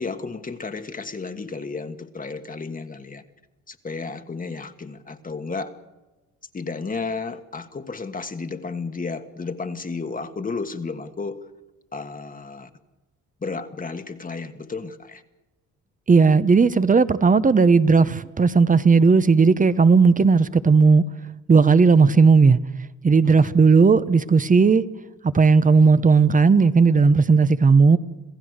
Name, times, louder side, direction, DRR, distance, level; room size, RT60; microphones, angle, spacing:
voice 1, 0.0-3.2 3.7-5.7 6.5-11.5 11.9-12.7 13.4-15.2 23.2-23.5, left 4 dB, 30° left, 1.5 m, -32 dB
voice 2, 16.1-21.0 21.5-22.6 23.0-24.8 25.3-28.0, right 4 dB, 25° right, 0.9 m, -15 dB
27.0 x 15.5 x 6.5 m
cardioid pair, 90°, 30 cm